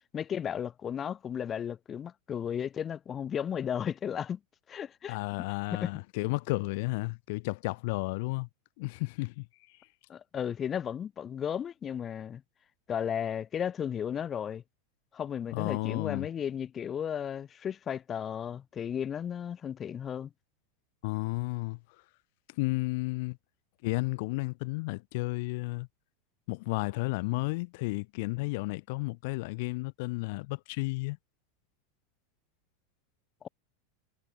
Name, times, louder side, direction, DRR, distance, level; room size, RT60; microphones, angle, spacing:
voice 1, 0.1-4.4 4.7-5.2 5.7-5.9 10.1-12.4 12.9-14.6 15.1-20.3 33.4-33.5, left 8 dB, 20° left, 4.1 m, -34 dB
voice 2, 5.1-8.5 8.8-9.5 15.5-16.3 21.0-21.8 22.6-23.4 23.8-25.9 26.5-31.2, left 25 dB, 50° left, 2.7 m, -32 dB
supercardioid pair, 165°, 0 cm